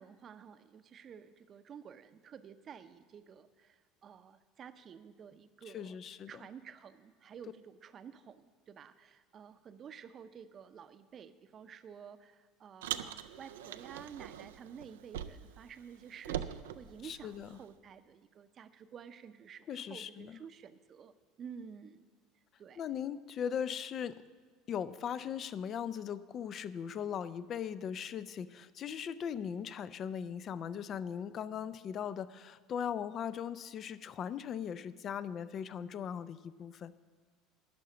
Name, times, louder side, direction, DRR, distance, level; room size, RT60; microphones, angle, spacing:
voice 1, 0.0-6.0 6.3-22.0 22.6-22.8, right 7 dB, 45° right, 11 dB, 0.6 m, -51 dB
voice 2, 5.7-6.4 17.0-17.5 19.7-20.4 22.8-24.2 24.7-36.9, left 8 dB, 45° left, 16 dB, 0.5 m, -39 dB
Car, 12.8-15.6 15.9-17.7, right 10 dB, 85° right, 0.4 m, -42 dB
11.0 x 5.7 x 8.7 m, 1.5 s
hypercardioid pair, 80°, 0 cm